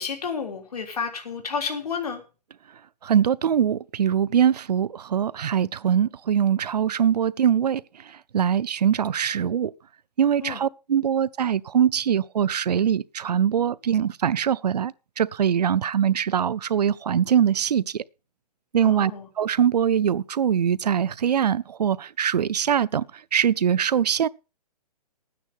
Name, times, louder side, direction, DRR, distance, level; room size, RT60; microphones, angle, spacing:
voice 1, 0.0-2.2 10.4-10.6 18.8-19.3, left 6 dB, 65° left, 3.5 m, -31 dB
voice 2, 3.0-7.8 8.3-9.7 10.2-18.0 18.7-19.1 19.4-23.0 23.3-24.3, right 8 dB, 75° right, 0.6 m, -22 dB
11.0 x 9.5 x 5.6 m
hypercardioid pair, 180°, 21 cm